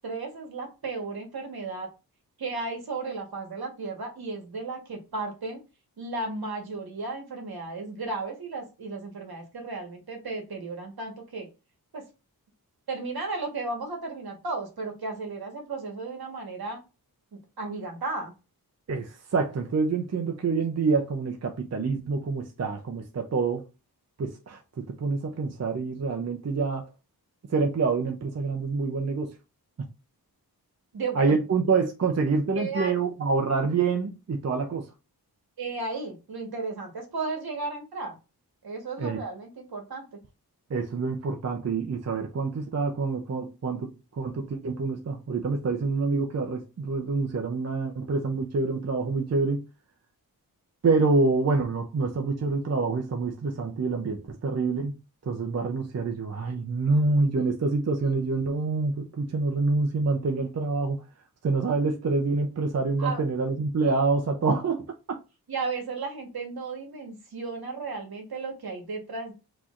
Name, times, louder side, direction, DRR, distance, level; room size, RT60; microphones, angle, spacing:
voice 1, 0.0-1.9 2.4-5.6 6.0-11.5 11.9-12.0 12.9-16.8 17.3-18.3 30.9-31.2 32.5-32.9 35.6-38.2 38.6-40.0 63.0-63.2 65.5-69.3, right 3 dB, 70° right, 1.4 m, -34 dB
voice 2, 18.9-23.6 24.2-26.9 27.5-29.3 29.8-29.9 31.1-34.9 39.0-39.2 40.7-49.6 50.8-55.0 55.3-61.0 61.4-64.9, right 4 dB, 40° right, 0.6 m, -26 dB
6.0 x 3.0 x 2.5 m
wide cardioid pair, 115°, 38 cm